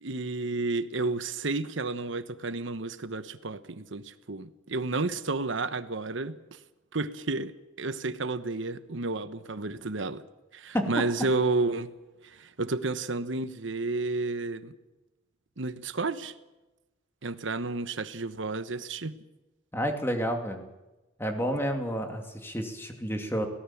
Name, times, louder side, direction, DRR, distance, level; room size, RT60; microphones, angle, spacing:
voice 1, 0.0-6.4 6.9-10.2 10.5-11.9 12.2-14.7 15.6-16.3 17.2-19.1, right 3 dB, 75° right, 12 dB, 1.1 m, -31 dB
voice 2, 10.7-11.0 19.7-20.6 21.2-23.5, equal, 10° left, 4 dB, 2.4 m, -30 dB
22.5 x 17.5 x 7.3 m, 1.1 s
head